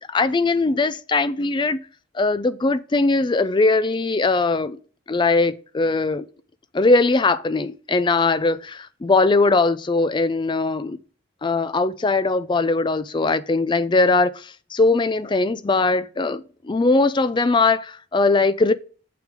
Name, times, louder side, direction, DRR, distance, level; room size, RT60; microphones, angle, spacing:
voice 1, 0.0-1.8 2.1-4.8 5.1-6.3 6.7-11.0 11.4-18.7, left 3 dB, 25° left, 0.4 m, -20 dB
7.0 x 6.0 x 3.6 m
head